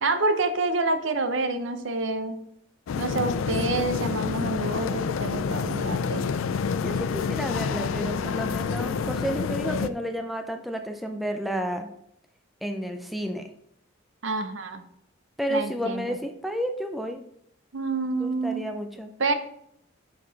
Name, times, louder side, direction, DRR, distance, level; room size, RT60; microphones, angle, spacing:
voice 1, 0.0-2.4 3.0-6.3 14.2-14.8 15.5-16.2 17.7-18.6 19.2-19.3, right 3 dB, 70° right, 8 dB, 0.7 m, -27 dB
sound 1, 2.9-9.9, left 5 dB, 85° left, 0.4 m, -28 dB
voice 2, 6.8-11.9 12.6-13.5 15.4-17.2 18.2-19.1, equal, ahead, 5 dB, 0.4 m, -31 dB
5.6 x 5.4 x 3.9 m, 0.73 s
head